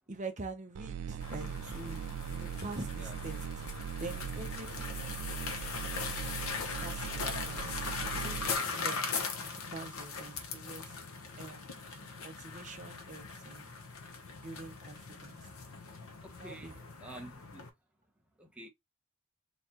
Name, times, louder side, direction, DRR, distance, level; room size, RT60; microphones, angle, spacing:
voice 1, 0.1-2.0 2.3-3.5 4.0-5.3 6.8-9.0 9.5-10.9 11.4-11.7 12.2-13.7 14.4-15.4 16.4-16.9, right 3 dB, 35° right, 0.8 m, -45 dB
sound 1, 0.7-8.5, right 9 dB, 85° right, 0.4 m, -40 dB
sound 2, 1.2-17.7, left 4 dB, 65° left, 0.9 m, -40 dB
voice 2, 16.2-17.7 18.4-18.7, right 1 dB, 5° right, 0.9 m, -49 dB
4.1 x 3.0 x 2.9 m
head